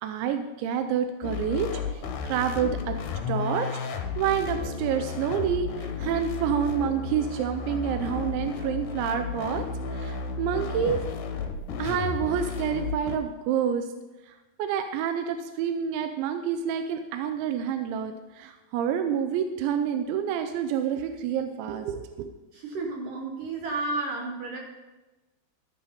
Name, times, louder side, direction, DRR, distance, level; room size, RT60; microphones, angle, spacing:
voice 1, 0.0-3.0 3.3-3.8 4.2-11.0 11.8-13.9 14.3-14.4 14.6-22.3, right 8 dB, 85° right, 7 dB, 3.1 m, -28 dB
sound 1, 1.2-13.2, left 5 dB, 70° left, 2.0 m, -33 dB
voice 2, 22.5-24.6, right 3 dB, 65° right, 0 dB, 2.4 m, -32 dB
13.0 x 11.5 x 4.3 m, 1.1 s
omnidirectional pair, 5.2 m